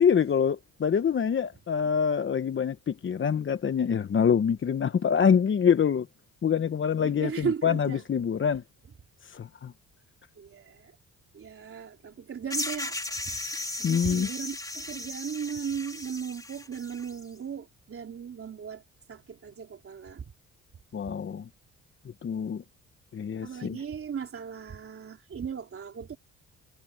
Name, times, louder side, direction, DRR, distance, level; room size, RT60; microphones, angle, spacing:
voice 1, 0.0-6.1 6.4-8.6 9.2-9.7 13.8-14.3 20.9-21.5 22.2-22.6 23.1-23.8, left 7 dB, 40° left, 1.1 m, -25 dB
voice 2, 7.0-8.0 10.4-11.0 11.3-13.0 13.2-18.8 19.1-20.3 23.4-26.2, right 7 dB, 45° right, 3.6 m, -37 dB
sound 1, 12.5-17.2, left 2 dB, 10° left, 3.3 m, -36 dB
cardioid pair, 90°, 30 cm